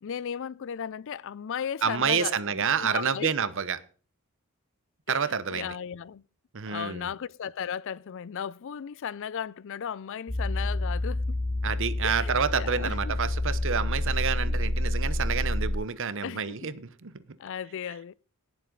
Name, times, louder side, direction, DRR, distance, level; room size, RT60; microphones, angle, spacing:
voice 1, 0.0-3.3 5.1-5.2 5.5-6.2 6.7-11.4 12.0-13.1 14.5-14.6 15.3-15.4 16.2-16.7 17.4-18.1, left 8 dB, 60° left, 0.4 m, -36 dB
voice 2, 1.8-3.8 5.1-5.8 6.5-7.1 11.6-17.2, right 6 dB, 60° right, 0.9 m, -28 dB
sound 1, 10.3-15.7, left 1 dB, 45° left, 2.4 m, -28 dB
18.0 x 7.5 x 3.9 m
head